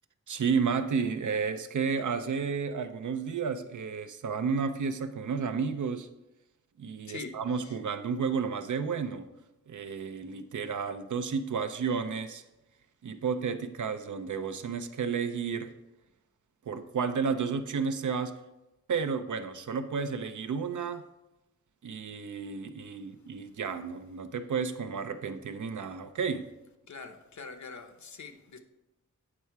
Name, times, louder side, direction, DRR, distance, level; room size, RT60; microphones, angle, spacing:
voice 1, 0.3-6.1 6.8-9.3 9.7-12.4 13.0-15.7 16.7-18.4 18.9-21.0 21.8-26.5, right 5 dB, 75° right, 0.7 m, -32 dB
voice 2, 7.1-7.8 26.9-28.6, left 4 dB, 70° left, 0.9 m, -44 dB
8.6 x 5.5 x 4.6 m
wide cardioid pair, 110°, 30 cm